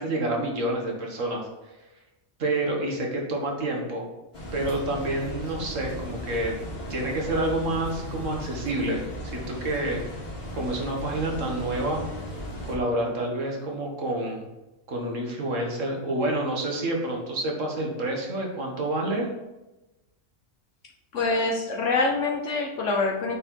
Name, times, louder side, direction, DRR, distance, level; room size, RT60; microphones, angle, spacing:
voice 1, 0.0-1.5 2.4-4.1 4.5-6.6 6.9-10.0 10.5-12.0 12.6-14.5 14.9-19.3, right 1 dB, 70° right, 0 dB, 1.9 m, -28 dB
sound 1, 4.3-12.8, left 1 dB, 45° left, 2.5 m, -36 dB
voice 2, 21.1-23.3, left 3 dB, 70° left, 0 dB, 1.2 m, -25 dB
8.7 x 4.3 x 4.4 m, 1.0 s
omnidirectional pair, 1.4 m